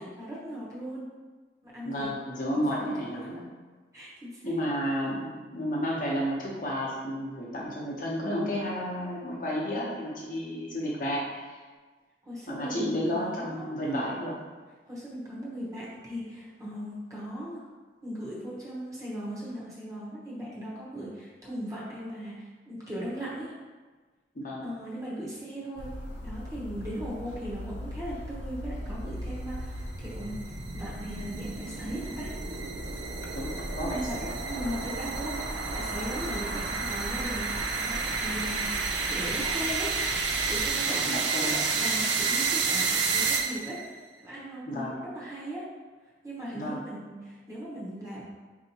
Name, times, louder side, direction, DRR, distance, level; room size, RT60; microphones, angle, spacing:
voice 1, 0.2-1.1 1.6-2.1 2.5-3.3 3.9-4.6 12.2-14.2 14.9-17.6 18.0-23.5 24.6-25.9 26.2-32.4 33.8-34.2 34.5-40.0 40.5-44.0 44.2-45.7 46.2-48.2, equal, 20° right, -7 dB, 0.9 m, -38 dB
voice 2, 1.8-3.5 4.4-11.6 12.5-14.4 24.3-24.7 33.3-34.4 40.9-41.6 44.7-45.0 46.5-46.8, equal, 50° left, -5 dB, 0.8 m, -32 dB
sound 1, 25.8-40.7, left 1 dB, 90° left, 0.5 m, -40 dB
sound 2, 29.0-43.9, right 4 dB, 80° right, 0.4 m, -31 dB
4.3 x 2.7 x 2.8 m, 1.4 s
head